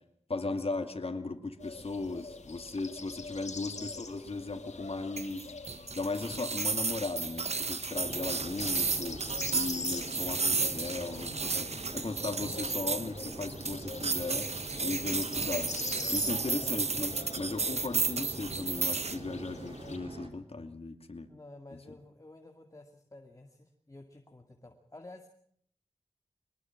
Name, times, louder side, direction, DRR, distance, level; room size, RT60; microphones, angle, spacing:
voice 1, 0.3-5.5 5.9-14.5 14.8-15.7 16.1-21.3, left 3 dB, 60° left, 7 dB, 2.4 m, -37 dB
sound 1, 1.6-20.0, left 4 dB, 90° left, 2.5 m, -45 dB
sound 2, 5.2-19.2, right 4 dB, 70° right, 1.3 m, -33 dB
sound 3, 7.9-20.3, right 2 dB, 55° right, 4.0 m, -45 dB
voice 2, 16.3-16.9 21.3-25.3, left 2 dB, 30° left, 3 dB, 2.4 m, -51 dB
24.0 x 20.5 x 6.0 m, 0.63 s
wide cardioid pair, 70°, 11 cm